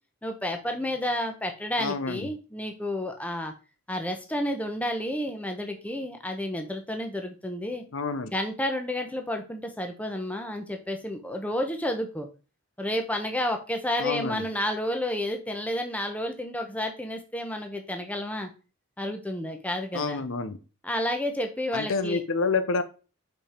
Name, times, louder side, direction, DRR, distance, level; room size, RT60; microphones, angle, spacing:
voice 1, 0.2-3.5 3.9-7.8 8.3-12.3 12.8-18.5 19.0-20.2 20.8-22.2, left 1 dB, 5° left, 5 dB, 0.8 m, -31 dB
voice 2, 1.8-2.3 7.9-8.3 14.0-14.4 19.9-20.6 21.7-22.8, left 4 dB, 60° left, 11 dB, 0.6 m, -28 dB
5.3 x 5.1 x 4.3 m, 0.34 s
head